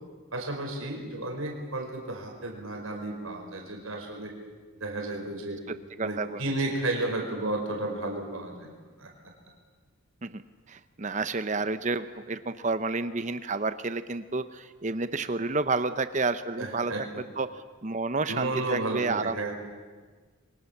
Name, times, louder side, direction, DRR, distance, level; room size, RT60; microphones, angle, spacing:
voice 1, 0.3-4.3 4.8-5.6 6.0-8.7 9.0-9.1 16.6-17.0 18.3-19.5, right 2 dB, 80° right, 1 dB, 5.2 m, -32 dB
voice 2, 6.0-6.4 10.2-10.4 10.7-16.9 17.4-19.4, right 3 dB, 35° right, 11 dB, 0.7 m, -30 dB
28.5 x 23.5 x 7.3 m, 1.5 s
head